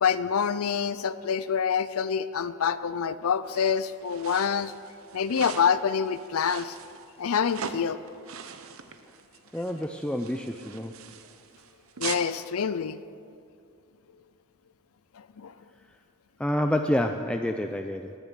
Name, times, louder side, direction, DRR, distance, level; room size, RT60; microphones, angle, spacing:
voice 1, 0.0-4.7 5.1-6.7 7.2-8.0 12.0-13.0 15.4-15.5, left 7 dB, 70° left, 14 dB, 0.5 m, -26 dB
sound 1, 3.4-12.3, right 6 dB, 65° right, 1.0 m, -41 dB
voice 2, 9.5-10.9 16.4-18.1, left 1 dB, 5° left, 4 dB, 0.5 m, -28 dB
19.0 x 10.5 x 6.7 m, 2.4 s
head